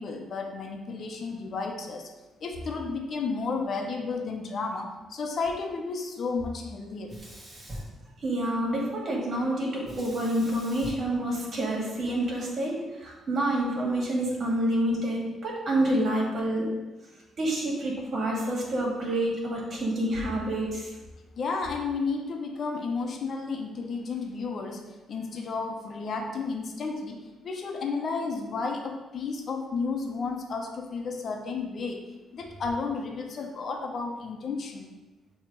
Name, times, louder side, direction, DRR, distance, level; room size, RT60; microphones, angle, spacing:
voice 1, 0.0-2.1 2.4-7.2 21.3-32.1 32.3-34.9, left 4 dB, 55° left, 3 dB, 1.0 m, -32 dB
Sink (filling or washing), 7.0-8.7 9.8-12.1, equal, 25° right, 2.2 m, -44 dB
voice 2, 8.2-16.8 17.4-21.0, right 1 dB, 50° right, -2 dB, 2.2 m, -28 dB
7.0 x 3.3 x 4.9 m, 1.1 s
cardioid pair, 90°, 0 cm